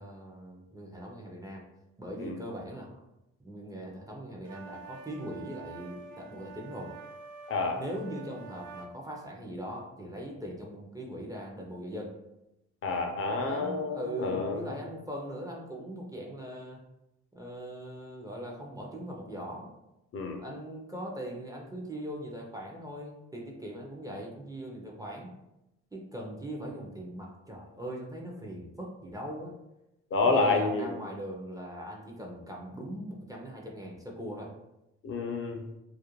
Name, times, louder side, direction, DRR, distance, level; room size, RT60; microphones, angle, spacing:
voice 1, 0.0-1.7 2.0-3.0 3.4-6.9 7.8-12.1 13.4-16.8 17.3-19.7 20.4-25.3 25.9-29.5 30.2-34.5, right 1 dB, 10° right, -1 dB, 0.5 m, -40 dB
sound 1, 4.4-8.9, right 4 dB, 80° right, 0.4 m, -47 dB
voice 2, 7.5-7.8 12.8-14.7 20.1-20.4 30.1-31.0 35.0-35.7, left 3 dB, 45° left, 3 dB, 0.5 m, -29 dB
2.4 x 2.1 x 3.0 m, 0.90 s
cardioid pair, 90°, 30 cm